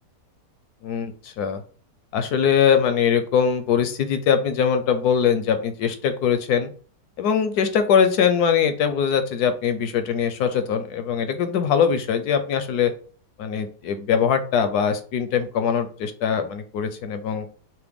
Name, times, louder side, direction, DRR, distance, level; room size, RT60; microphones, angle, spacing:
voice 1, 0.8-1.6 2.1-6.7 7.2-12.9 13.4-17.5, left 7 dB, 75° left, 9 dB, 1.0 m, -22 dB
5.7 x 2.1 x 3.5 m, 0.41 s
omnidirectional pair, 1.9 m